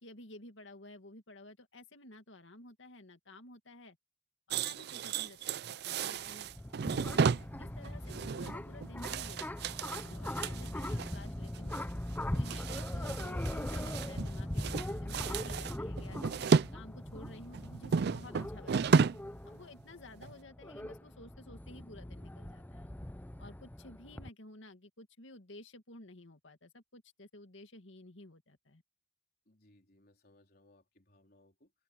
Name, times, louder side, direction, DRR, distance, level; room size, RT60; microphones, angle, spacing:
voice 1, 0.0-4.0 4.5-6.5 6.9-7.3 7.6-11.9 12.3-16.2 16.7-19.0 19.5-22.9 23.4-28.8, left 2 dB, 75° left, 2.2 m, -53 dB
sound 1, 4.5-11.2 11.5-11.8 12.1-14.3 14.6-16.7 17.1-19.3 19.6-19.8 20.2-20.3, right 5 dB, 55° right, 0.4 m, -33 dB
Sea lions, 6.2-24.3, left 1 dB, 10° left, 0.5 m, -40 dB
voice 2, 29.5-31.7, left 1 dB, 50° left, 3.9 m, -65 dB
open air
head